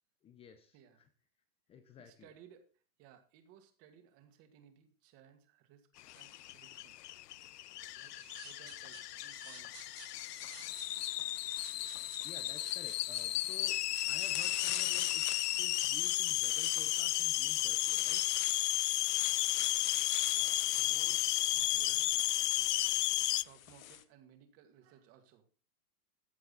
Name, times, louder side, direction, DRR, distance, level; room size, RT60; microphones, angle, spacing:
voice 1, 0.2-1.1 1.7-2.3 12.2-13.8 14.0-15.2 15.6-18.2, left 7 dB, 15° left, 9 dB, 0.7 m, -53 dB
voice 2, 2.0-5.9 6.1-7.0 7.9-9.9 20.2-22.3 23.3-25.4, right 9 dB, 30° right, 7 dB, 2.2 m, -61 dB
sound 1, 6.0-7.5 8.7-8.9 9.6-24.0, left 12 dB, 60° left, 1.2 m, -46 dB
sound 2, 6.1-23.4, left 15 dB, 85° left, 0.5 m, -33 dB
sound 3, 8.1-16.5, right 10 dB, 75° right, 2.8 m, -54 dB
14.5 x 8.5 x 4.1 m, 0.38 s
hypercardioid pair, 145°, 46 cm